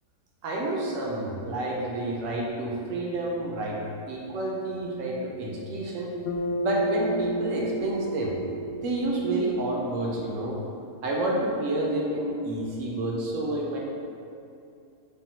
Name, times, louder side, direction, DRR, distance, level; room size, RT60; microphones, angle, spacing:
voice 1, 0.4-3.8 4.1-6.2 6.6-8.4 8.8-10.6 11.0-13.8, right 1 dB, 70° right, -2 dB, 0.9 m, -29 dB
Bass guitar, 6.3-10.7, right 1 dB, 70° left, 0.7 m, -32 dB
3.6 x 2.2 x 4.2 m, 2.6 s
omnidirectional pair, 1.6 m